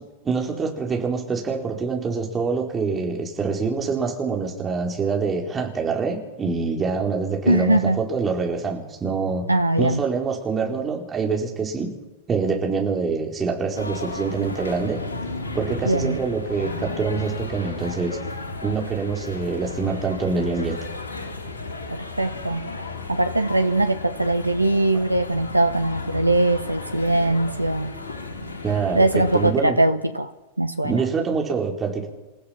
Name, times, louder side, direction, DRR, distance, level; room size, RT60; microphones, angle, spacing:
voice 1, 0.2-9.5 9.8-11.9 12.3-15.0 15.5-18.2 18.6-20.8 24.9-25.0 28.6-29.8 30.8-32.1, right 5 dB, 20° right, 1 dB, 4.5 m, -25 dB
voice 2, 7.5-8.0 9.5-10.0 15.9-16.1 22.2-22.6 23.1-27.9 29.0-30.3 30.6-30.9, right 2 dB, 85° right, 9 dB, 0.9 m, -21 dB
sound 1, 13.8-29.5, left 3 dB, 70° left, 5.6 m, -34 dB
29.0 x 15.5 x 6.0 m, 1.1 s
figure-of-eight pair, 90°, 0 cm